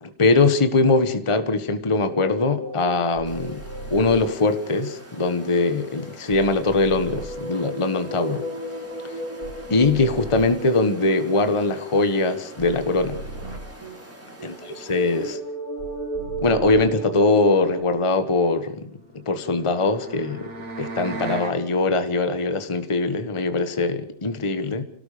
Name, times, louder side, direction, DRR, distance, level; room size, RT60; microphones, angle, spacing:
voice 1, 0.0-3.6 3.9-8.5 9.7-13.2 14.4-14.5 14.9-15.4 16.4-19.0 19.3-20.5 20.8-24.8, left 3 dB, 20° left, 1.2 m, -21 dB
sound 1, 2.1-5.6 6.0-17.8, right 2 dB, 45° right, 4.1 m, -35 dB
sound 2, 3.2-15.4, equal, 5° right, 3.3 m, -45 dB
sound 3, 19.0-21.6, right 3 dB, 65° right, 3.5 m, -36 dB
28.5 x 18.0 x 5.1 m
omnidirectional pair, 2.1 m